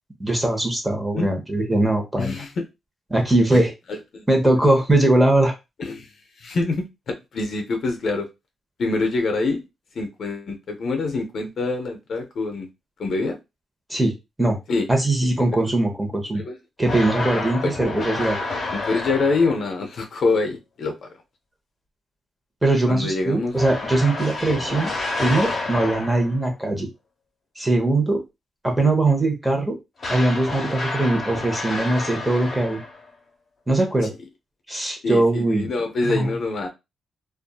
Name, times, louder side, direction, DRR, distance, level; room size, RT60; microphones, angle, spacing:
voice 1, 0.2-2.4 3.1-3.7 4.3-5.5 13.9-14.1 14.4-14.6 14.9-16.4 16.8-18.4 22.6-24.9 25.2-26.9 27.6-28.2 28.6-29.7 30.1-32.8 33.7-34.1 34.7-35.7 36.0-36.3, right 2 dB, 15° right, 0.9 m, -21 dB
voice 2, 2.2-2.6 3.9-4.3 5.8-6.1 6.4-8.3 8.8-9.6 10.0-12.7 13.0-13.4 14.7-14.9 16.3-16.6 17.6-17.8 18.9-21.1 22.9-23.6 35.0-36.7, left 3 dB, 65° left, 0.5 m, -25 dB
sound 1, 16.8-19.8 23.5-26.4 30.0-33.1, left 2 dB, 45° left, 1.0 m, -29 dB
2.6 x 2.3 x 2.2 m
cardioid pair, 70°, 0 cm